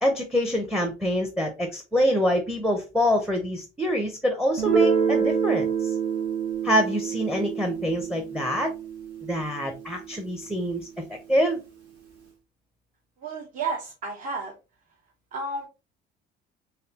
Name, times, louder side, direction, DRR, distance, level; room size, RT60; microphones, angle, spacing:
voice 1, 0.0-5.9 6.6-8.7 9.2-11.6, equal, ahead, 5 dB, 0.6 m, -25 dB
Guitar, 4.6-10.1, right 6 dB, 80° right, 1.8 m, -27 dB
voice 2, 13.2-14.5 15.3-15.7, right 3 dB, 45° right, 2 dB, 0.8 m, -31 dB
4.0 x 3.4 x 2.8 m, 0.29 s
cardioid pair, 155°, 19 cm